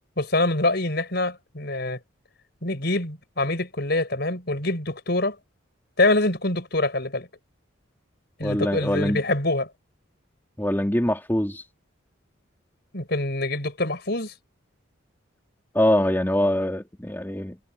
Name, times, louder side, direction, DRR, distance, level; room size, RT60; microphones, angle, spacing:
voice 1, 0.2-2.0 2.6-5.4 6.0-7.3 8.4-9.7 12.9-14.3, left 2 dB, 50° left, 5.6 m, -25 dB
voice 2, 8.4-9.2 10.6-11.6 15.7-17.7, left 1 dB, 10° left, 2.7 m, -23 dB
head